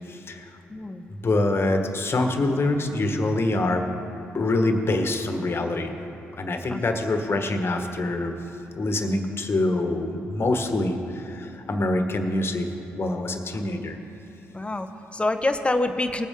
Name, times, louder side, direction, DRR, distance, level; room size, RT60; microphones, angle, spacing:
voice 1, 0.1-0.5 1.1-3.8 4.3-5.9 6.3-8.4 8.7-12.7 13.0-14.0, left 2 dB, 45° left, 5 dB, 1.4 m, -25 dB
voice 2, 0.7-1.0 6.7-6.8 14.5-16.3, left 2 dB, 20° left, 8 dB, 0.9 m, -26 dB
19.0 x 8.3 x 3.7 m, 2.9 s
supercardioid pair, 50°, 6 cm